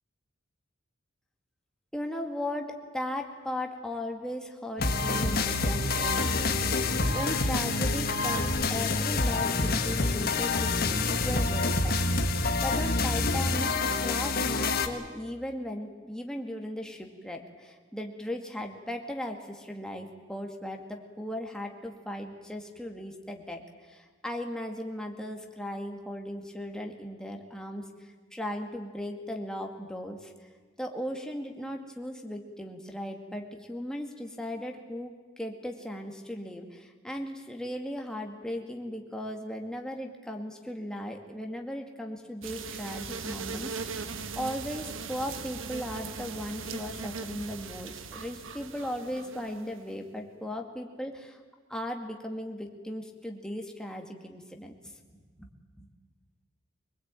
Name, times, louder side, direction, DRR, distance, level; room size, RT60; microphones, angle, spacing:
voice 1, 1.9-6.6 7.1-12.0 12.6-13.7 14.0-27.9 28.3-30.3 30.8-44.1 44.3-51.4 51.7-54.9 55.4-55.5 55.8-55.9, left 1 dB, 5° left, 2 dB, 2.2 m, -37 dB
sound 1, 4.8-14.9, left 3 dB, 50° left, 1.7 m, -27 dB
sound 2, 42.4-50.0, right 5 dB, 70° right, 1.3 m, -39 dB
24.0 x 21.0 x 9.1 m, 1.4 s
head